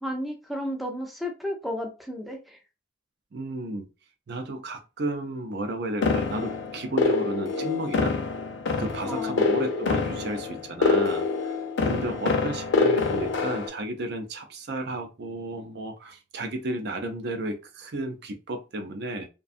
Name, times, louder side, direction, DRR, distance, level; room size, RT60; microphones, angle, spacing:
voice 1, 0.0-2.6 9.0-9.4 11.9-12.2, equal, ahead, 0.4 m, -33 dB
voice 2, 3.3-3.9 4.3-8.2 8.8-11.6 11.8-19.3, right 2 dB, 55° right, 0.5 m, -33 dB
sound 1, 6.0-13.7, left 4 dB, 65° left, 0.5 m, -26 dB
2.5 x 2.2 x 2.4 m
head